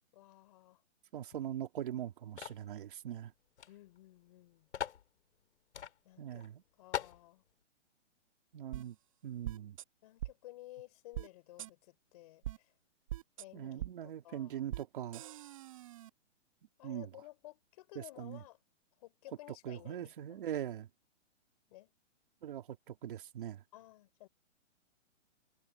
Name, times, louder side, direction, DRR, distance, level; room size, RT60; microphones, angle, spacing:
voice 1, 0.1-0.8 3.7-4.7 6.0-6.5 6.8-7.4 10.0-12.7 13.4-14.6 16.8-18.6 19.0-20.4 21.7-21.9 23.7-24.3, left 17 dB, 30° left, 3.4 m, -55 dB
voice 2, 1.1-3.3 6.2-6.6 8.5-9.0 9.2-9.8 13.5-15.2 16.8-17.1 18.0-18.4 19.6-20.9 22.4-23.6, right 10 dB, 45° right, 2.6 m, -41 dB
sound 1, 2.4-2.7 3.6-3.7 4.0-4.1 4.7-5.0 5.7-5.9 6.4-6.5 6.9-7.2, left 9 dB, 65° left, 2.6 m, -39 dB
sound 2, 8.7-8.8 9.4-9.8 10.2-10.3 11.1-11.3 11.6-11.7 12.4-12.6 13.1-13.4 13.8-13.9 14.7-14.8 15.1-16.1, right 14 dB, 25° right, 1.1 m, -41 dB
hypercardioid pair, 170°, 37 cm